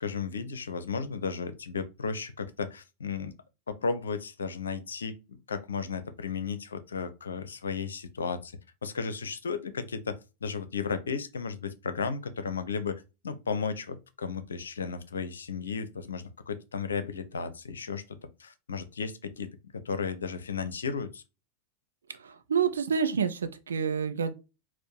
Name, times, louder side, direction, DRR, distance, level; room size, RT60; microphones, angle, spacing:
voice 1, 0.0-3.3 3.7-8.5 8.8-21.2, left 5 dB, 70° left, 0.5 m, -34 dB
voice 2, 22.2-24.3, right 6 dB, 70° right, 0.5 m, -28 dB
4.4 x 2.1 x 4.5 m
figure-of-eight pair, 90°, 0 cm